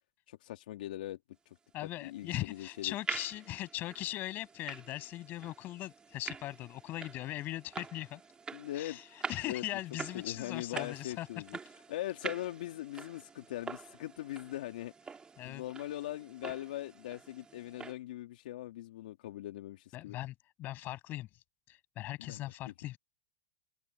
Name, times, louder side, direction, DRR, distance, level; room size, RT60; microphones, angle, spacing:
voice 1, 0.3-1.2 1.5-2.9 8.5-9.0 9.4-9.7 10.1-11.6 11.9-15.2 15.4-20.2 22.2-22.4 22.7-22.8, left 14 dB, 75° left, 2.2 m, -41 dB
voice 2, 1.7-8.2 8.7-9.0 9.3-11.3 15.4-15.6 19.9-21.3 21.7-23.0, left 15 dB, 40° left, 7.2 m, -39 dB
sound 1, 1.9-17.9, right 5 dB, 20° right, 3.5 m, -46 dB
hypercardioid pair, 110°, 5 cm